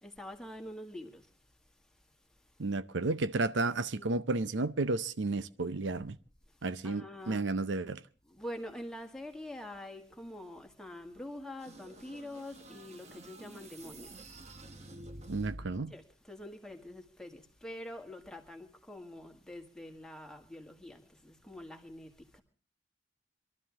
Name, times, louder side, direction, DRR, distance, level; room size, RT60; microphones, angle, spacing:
voice 1, 0.0-1.3 3.9-4.1 6.8-7.4 8.3-14.2 15.9-22.4, left 1 dB, 5° left, 1.9 m, -45 dB
voice 2, 2.6-6.2 6.6-8.0 15.3-15.9, right 3 dB, 75° right, 0.6 m, -32 dB
sound 1, 11.6-15.9, right 1 dB, 35° right, 1.3 m, -49 dB
23.0 x 13.0 x 3.6 m
head